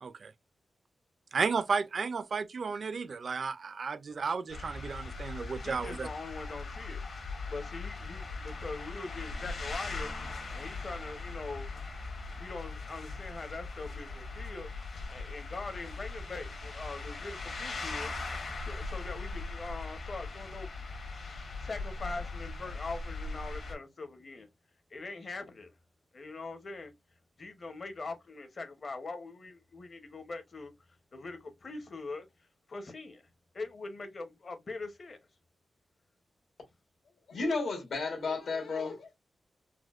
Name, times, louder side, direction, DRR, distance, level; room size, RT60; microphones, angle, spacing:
voice 1, 0.0-0.3 1.3-6.1, right 5 dB, 45° right, 0.3 m, -33 dB
sound 1, 4.5-23.7, left 3 dB, 55° left, 1.2 m, -40 dB
voice 2, 5.6-7.0 7.5-10.1 10.5-11.8 12.4-14.7 15.1-18.1 18.7-20.7 21.6-24.5 24.9-25.7 26.1-26.9 27.4-30.7 31.1-32.2 32.7-33.2 33.5-35.2, left 3 dB, 40° left, 0.7 m, -42 dB
voice 3, 37.3-39.2, left 3 dB, 70° left, 1.4 m, -33 dB
4.2 x 2.1 x 2.4 m
wide cardioid pair, 165°, 0 cm